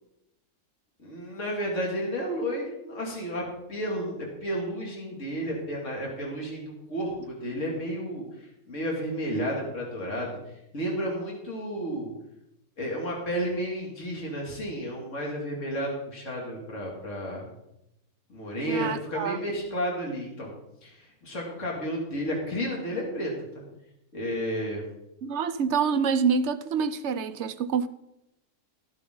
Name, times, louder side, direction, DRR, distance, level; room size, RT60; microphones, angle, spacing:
voice 1, 1.0-10.4 10.7-12.1 12.8-17.5 18.3-20.5 20.8-23.6 24.1-24.8, equal, 50° left, 2.9 m, -32 dB
voice 2, 18.7-19.4 25.2-27.9, right 6 dB, 60° right, 0.8 m, -26 dB
13.5 x 12.0 x 3.9 m
omnidirectional pair, 1.6 m